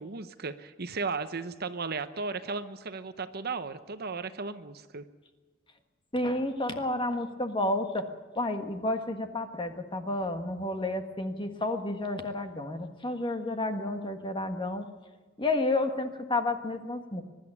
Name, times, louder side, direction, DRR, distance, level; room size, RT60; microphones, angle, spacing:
voice 1, 0.0-5.0, right 4 dB, 50° right, 11 dB, 0.9 m, -35 dB
voice 2, 6.1-8.0 8.3-14.9 15.4-17.2, left 2 dB, 25° left, 6 dB, 1.5 m, -31 dB
22.5 x 11.5 x 9.9 m, 1.3 s
head